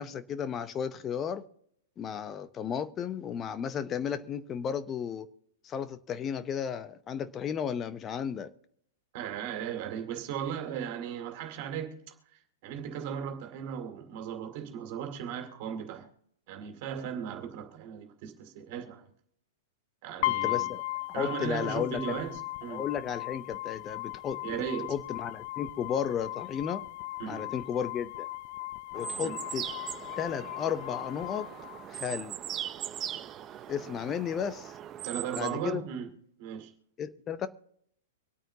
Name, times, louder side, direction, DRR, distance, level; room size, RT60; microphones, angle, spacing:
voice 1, 0.0-1.4 2.0-5.3 5.6-8.5 20.2-20.8 21.1-22.2 22.7-24.6 24.9-26.8 27.3-28.3 28.9-29.7 30.2-31.5 31.9-32.4 33.7-34.7 35.4-35.8 37.0-37.5, left 8 dB, 25° left, 0.8 m, -34 dB
voice 2, 9.1-12.0 12.6-16.1 16.5-19.0 20.0-20.7 21.1-22.8 24.4-24.9 27.2-27.5 29.2-29.4 35.0-36.1 36.4-36.7, right 8 dB, 50° right, 2.4 m, -37 dB
sound 1, 20.2-32.2, left 19 dB, 50° left, 0.4 m, -37 dB
sound 2, 28.9-35.5, right 11 dB, 30° right, 0.6 m, -40 dB
25.0 x 9.0 x 2.8 m
hypercardioid pair, 115°, 0 cm